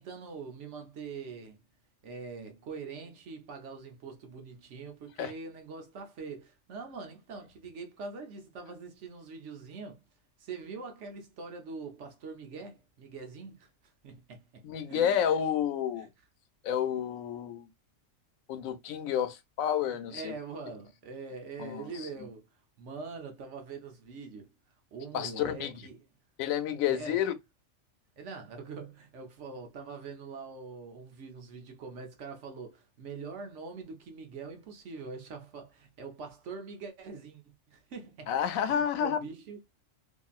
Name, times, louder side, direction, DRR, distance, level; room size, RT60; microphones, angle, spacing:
voice 1, 0.0-1.6 2.0-10.0 10.4-13.7 14.0-15.2 15.9-16.1 19.9-22.5 22.8-24.5 24.9-26.0 26.9-27.2 28.2-38.3 38.6-39.6, right 4 dB, 65° right, 1.0 m, -43 dB
voice 2, 14.6-16.1 16.6-17.7 18.5-20.3 21.6-22.1 25.1-25.7 26.4-27.3 38.3-39.2, left 9 dB, 80° left, 1.0 m, -30 dB
2.8 x 2.6 x 2.3 m
omnidirectional pair, 1.4 m